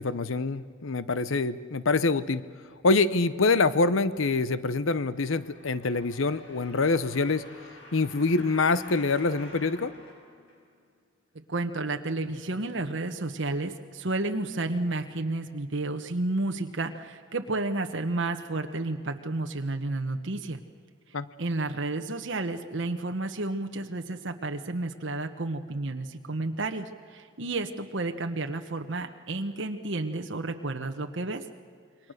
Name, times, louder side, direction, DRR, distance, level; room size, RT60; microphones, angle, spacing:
voice 1, 0.0-2.5 2.8-7.4 7.9-9.9 21.1-21.3, left 3 dB, 85° left, 15 dB, 0.8 m, -25 dB
sound 1, 5.1-11.0 11.6-11.7, equal, 65° left, 6.7 m, -49 dB
voice 2, 11.5-20.6 21.4-31.4, right 2 dB, 65° right, 5 dB, 1.2 m, -31 dB
28.0 x 23.0 x 6.6 m, 2.1 s
head